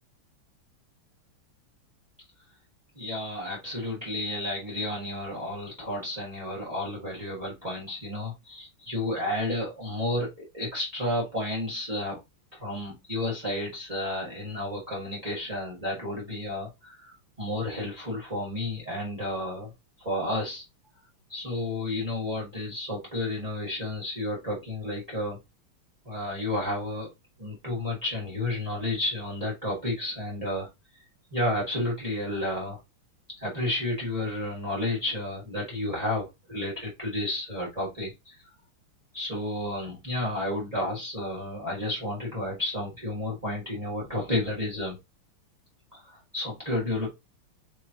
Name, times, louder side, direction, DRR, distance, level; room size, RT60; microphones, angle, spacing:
voice 1, 2.9-10.3 10.5-12.2 12.5-19.7 20.0-20.6 21.3-25.4 26.0-27.1 27.4-30.7 31.3-32.8 33.4-38.4 39.1-45.0 45.9-47.1, left 1 dB, 20° right, -5 dB, 1.3 m, -31 dB
4.8 x 3.0 x 2.8 m, 0.23 s
omnidirectional pair, 2.3 m